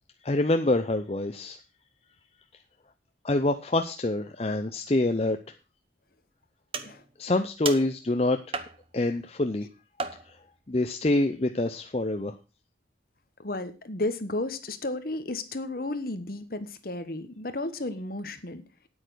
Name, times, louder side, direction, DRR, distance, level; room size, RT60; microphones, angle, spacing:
voice 1, 0.2-1.6 3.2-5.4 7.2-8.4 8.9-9.7 10.7-12.3, left 2 dB, 35° left, 7 dB, 0.6 m, -26 dB
sound 1, 6.7-7.2 7.7-8.1 8.5-9.1 10.0-10.6, right 4 dB, 30° right, 1.0 m, -35 dB
voice 2, 13.4-18.6, left 2 dB, 50° left, 10 dB, 1.2 m, -33 dB
9.2 x 8.7 x 6.2 m, 0.32 s
head